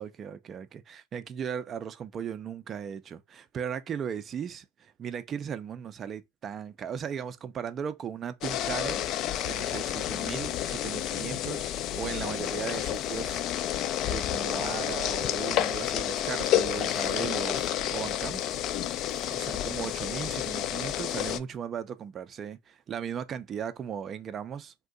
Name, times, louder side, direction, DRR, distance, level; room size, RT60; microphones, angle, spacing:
voice 1, 0.0-9.0 9.4-13.8 14.0-18.5 19.3-24.7, right 8 dB, 30° right, 0.4 m, -37 dB
sound 1, 8.4-21.4, left 11 dB, 45° left, 0.3 m, -30 dB
2.6 x 2.2 x 3.7 m
hypercardioid pair, 100°, 0 cm